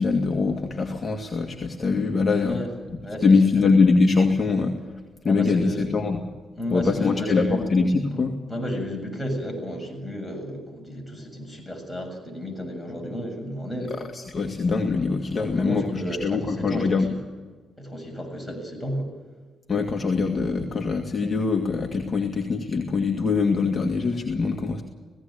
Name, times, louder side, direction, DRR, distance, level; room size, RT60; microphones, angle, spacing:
voice 1, 0.0-2.6 3.2-4.9 5.2-6.2 6.7-8.3 13.9-17.1 19.7-24.8, left 4 dB, 35° left, 2 dB, 2.1 m, -23 dB
voice 2, 5.2-5.9 6.6-7.7 8.1-14.0 15.4-17.2 17.8-19.2, equal, 5° left, 1 dB, 7.4 m, -32 dB
18.0 x 16.5 x 9.0 m, 1.4 s
cardioid pair, 90°, 0 cm